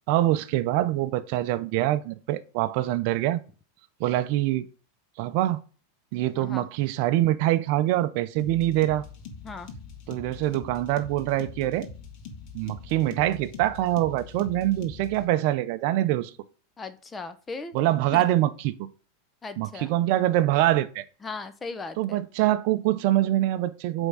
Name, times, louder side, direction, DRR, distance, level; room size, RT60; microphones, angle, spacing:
voice 1, 0.1-3.4 4.0-4.7 5.2-5.6 6.1-9.0 10.1-11.9 12.5-16.3 17.7-18.7 19.6-21.0 22.0-24.1, right 14 dB, 55° right, 0.6 m, -24 dB
voice 2, 6.3-6.7 9.4-9.7 16.8-17.7 18.1-18.2 19.4-19.9 21.2-22.2, left 4 dB, 15° left, 0.8 m, -37 dB
sound 1, 8.4-15.3, left 5 dB, 50° left, 1.7 m, -43 dB
8.0 x 3.6 x 5.5 m
supercardioid pair, 140°, 0 cm